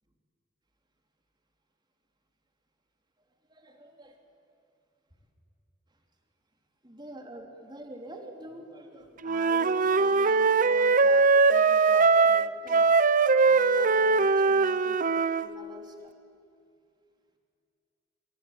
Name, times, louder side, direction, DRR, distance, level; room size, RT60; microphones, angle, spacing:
voice 1, 3.5-4.2 6.8-12.9 13.4-16.1, right 1 dB, 25° right, 3 dB, 3.1 m, -46 dB
Wind instrument woodwind instrument, 9.2-15.5, right 4 dB, 45° right, 0.7 m, -21 dB
27.5 x 23.0 x 9.1 m, 2.4 s
head